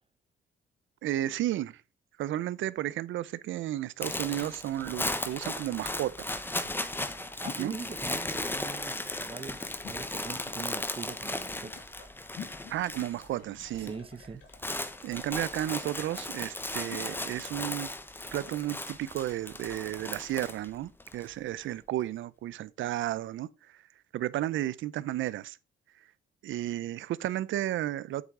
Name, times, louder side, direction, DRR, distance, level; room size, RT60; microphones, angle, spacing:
voice 1, 1.0-1.8 2.2-6.3 7.6-7.7 12.7-13.9 15.0-17.9 18.3-23.8 24.1-25.6 26.4-28.2, right 13 dB, 75° right, 0.7 m, -33 dB
sound 1, 3.9-18.6, left 9 dB, 75° left, 2.8 m, -51 dB
sound 2, 4.0-13.3 13.5-13.9 14.2-21.2, left 2 dB, 10° left, 1.1 m, -36 dB
voice 2, 7.4-11.7 13.9-14.4, right 4 dB, 25° right, 1.0 m, -42 dB
8.2 x 7.4 x 3.8 m
cardioid pair, 90°, 20 cm